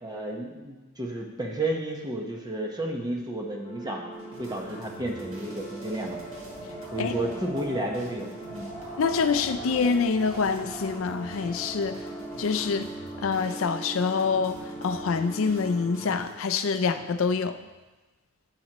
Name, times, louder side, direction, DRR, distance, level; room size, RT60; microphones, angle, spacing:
voice 1, 0.0-4.1 4.4-6.2 6.9-8.7, right 1 dB, 20° right, 1 dB, 1.1 m, -32 dB
sound 1, 3.6-16.2, right 2 dB, 25° left, 1.7 m, -41 dB
sound 2, 4.1-16.3, right 1 dB, 85° right, 1.8 m, -46 dB
Wind, 5.3-13.8, equal, 10° left, 3.0 m, -43 dB
voice 2, 9.0-12.0 12.4-12.9 13.2-17.6, left 5 dB, 75° left, 10 dB, 0.4 m, -26 dB
11.5 x 7.6 x 3.0 m, 1.2 s
head